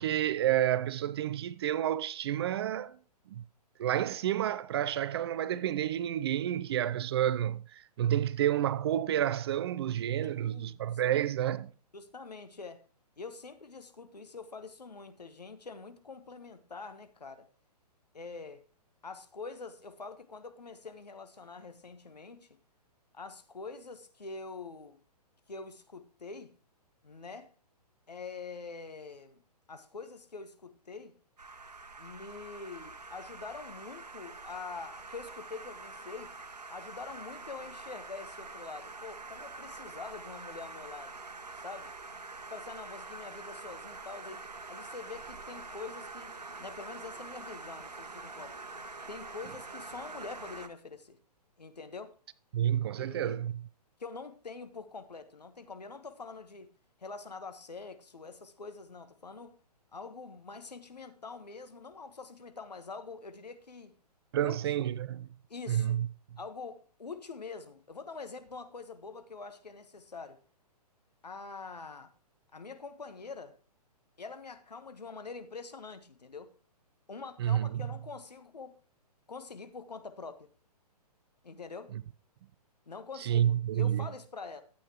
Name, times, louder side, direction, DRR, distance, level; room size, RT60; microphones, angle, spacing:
voice 1, 0.0-2.9 3.3-3.4 3.8-11.7 52.5-53.5 64.3-65.3 65.7-66.1 77.4-77.8 81.9-82.0 83.2-84.1, right 11 dB, 40° right, 0.4 m, -30 dB
voice 2, 10.2-10.8 11.1-11.2 11.9-12.8 13.2-17.5 18.1-18.6 19.0-22.5 23.1-25.0 25.5-26.5 27.0-27.5 28.1-29.4 29.7-31.2 32.0-36.3 36.7-41.2 41.5-41.9 42.5-44.4 44.7-46.3 46.6-48.5 49.1-51.2 51.6-52.1 53.0-53.4 54.0-56.7 57.0-59.6 59.9-63.9 64.4-64.8 65.5-66.0 66.4-70.4 71.2-72.1 72.5-73.5 74.2-76.5 77.1-78.8 79.3-80.5 81.4-81.9 82.9-84.6, left 4 dB, 80° left, 1.4 m, -45 dB
sound 1, 31.4-50.7, right 3 dB, 80° right, 1.1 m, -45 dB
13.0 x 8.5 x 3.0 m
figure-of-eight pair, 125°, 21 cm